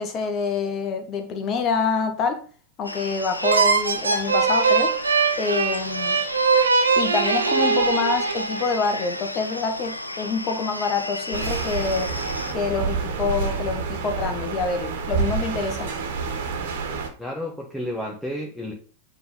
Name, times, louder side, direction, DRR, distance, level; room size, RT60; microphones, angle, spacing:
voice 1, 0.0-2.4 2.8-4.9 5.4-6.2 6.9-12.1 12.5-15.9, left 4 dB, 30° left, 1.6 m, -26 dB
sound 1, 2.8-12.5, left 1 dB, 85° left, 0.7 m, -33 dB
sound 2, 3.4-8.9, right 5 dB, 75° right, 1.2 m, -21 dB
sound 3, 11.3-17.1, right 5 dB, 55° right, 1.8 m, -28 dB
voice 2, 17.2-18.7, left 1 dB, ahead, 1.4 m, -31 dB
9.3 x 3.9 x 4.1 m
figure-of-eight pair, 90°, 0 cm